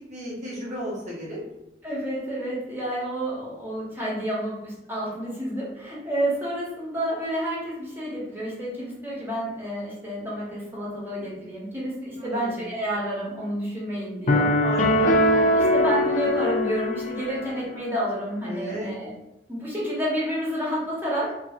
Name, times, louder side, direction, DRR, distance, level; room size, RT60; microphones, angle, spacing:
voice 1, 0.0-1.4 12.2-12.6 14.6-15.2 18.4-18.9, equal, 40° right, -5 dB, 0.9 m, -34 dB
voice 2, 1.8-14.5 15.6-19.1 19.5-21.3, right 1 dB, 15° right, -7 dB, 0.9 m, -29 dB
sound 1, 14.3-17.5, left 1 dB, 45° left, 0.4 m, -21 dB
2.6 x 2.6 x 2.4 m, 0.90 s
head